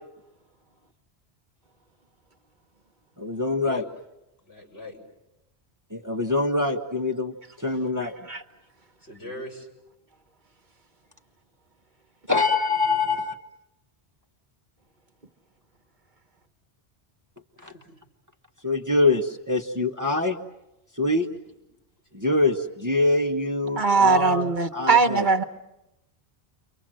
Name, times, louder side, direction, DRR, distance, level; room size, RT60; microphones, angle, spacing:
voice 1, 3.2-3.8 5.9-8.1 12.3-13.3 18.6-20.4 21.0-21.3 22.1-25.2, left 2 dB, 15° right, 3 dB, 1.1 m, -24 dB
voice 2, 4.4-5.0 9.0-9.7 17.6-18.0 21.3-21.6 22.1-22.3, left 1 dB, 70° left, -1 dB, 6.3 m, -41 dB
voice 3, 8.0-8.4 23.8-25.4, right 4 dB, 45° right, 6 dB, 1.2 m, -21 dB
30.0 x 24.0 x 7.6 m, 0.92 s
omnidirectional pair, 1.1 m